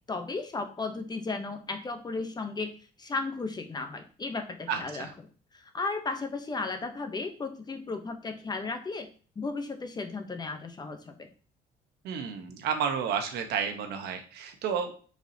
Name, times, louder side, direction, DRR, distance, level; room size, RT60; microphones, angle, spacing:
voice 1, 0.1-2.7 3.0-5.1 5.5-9.1 9.4-11.3, left 3 dB, 25° left, 7 dB, 0.7 m, -35 dB
voice 2, 4.7-5.1 12.0-14.9, right 7 dB, 75° right, 6 dB, 0.9 m, -31 dB
4.7 x 4.0 x 2.7 m, 0.41 s
cardioid pair, 110°, 17 cm